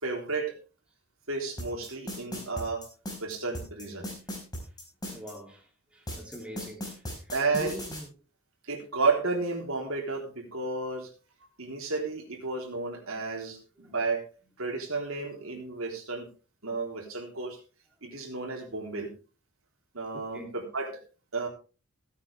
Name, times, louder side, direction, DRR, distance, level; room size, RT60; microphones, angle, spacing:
voice 1, 0.0-0.5 1.3-2.8 3.2-4.1 7.3-7.8 8.6-11.1 11.6-14.2 14.6-16.3 16.6-17.6 18.0-19.1 19.9-20.9 21.3-21.5, right 3 dB, 75° right, 3.7 m, -32 dB
sound 1, 1.6-5.3 6.1-8.0, equal, 20° left, 5.0 m, -37 dB
voice 2, 5.0-8.1 13.8-13.9 20.3-20.6, equal, 5° right, 2.8 m, -43 dB
16.0 x 9.5 x 3.4 m
head